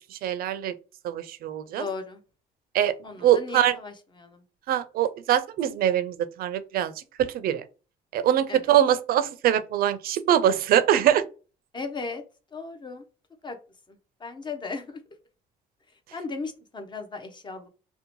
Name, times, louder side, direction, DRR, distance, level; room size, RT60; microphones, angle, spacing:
voice 1, 0.2-0.7 1.0-1.9 2.7-2.9 3.2-3.8 4.7-6.9 7.2-7.6 8.1-11.2, right 11 dB, 60° right, 0.4 m, -23 dB
voice 2, 1.8-2.2 3.0-4.4 8.5-8.7 11.7-12.2 12.5-13.0 13.4-13.6 13.9-15.0 16.1-17.7, left 4 dB, 25° left, 0.5 m, -36 dB
2.7 x 2.1 x 2.9 m
cardioid pair, 110°, 17 cm